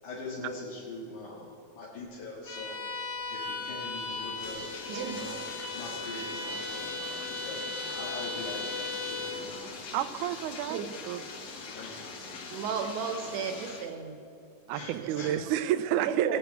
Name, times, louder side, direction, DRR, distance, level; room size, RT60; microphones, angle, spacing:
voice 1, 0.0-2.8 3.3-4.6 5.1-5.4 5.7-6.9 7.3-9.8 10.1-10.2 11.7-11.9 12.2-12.4 14.7-15.3, left 2 dB, 85° left, -7 dB, 3.4 m, -42 dB
Bowed string instrument, 2.5-9.5, left 3 dB, 40° left, 1.7 m, -37 dB
Bathtub (filling or washing), 4.2-13.9, left 4 dB, 65° left, 1.0 m, -43 dB
voice 2, 4.9-5.2 6.9-7.2 10.7-10.9 12.2-14.2 15.0-15.5 16.0-16.4, right 6 dB, 65° right, 6 dB, 2.1 m, -35 dB
voice 3, 9.9-10.8 11.1-11.2 14.7-16.4, right 12 dB, 85° right, 13 dB, 2.1 m, -30 dB
21.0 x 8.4 x 4.6 m, 2.6 s
omnidirectional pair, 3.5 m